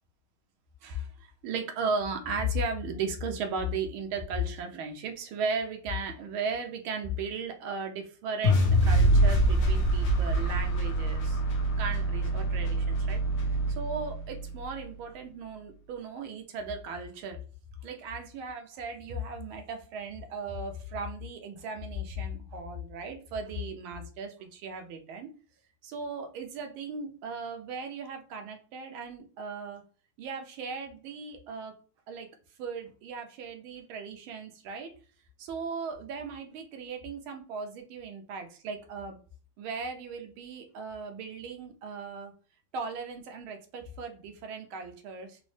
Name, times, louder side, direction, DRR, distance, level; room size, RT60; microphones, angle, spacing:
voice 1, 0.8-11.4 11.8-13.2 13.8-17.4 17.8-25.3 25.8-29.8 30.2-31.7 32.1-32.3 32.6-34.9 35.4-39.2 39.6-42.3 42.7-45.4, right 3 dB, 80° right, 4 dB, 1.5 m, -36 dB
sound 1, 8.4-14.6, right 1 dB, 65° left, 0.8 m, -25 dB
4.0 x 2.0 x 3.1 m, 0.39 s
omnidirectional pair, 2.3 m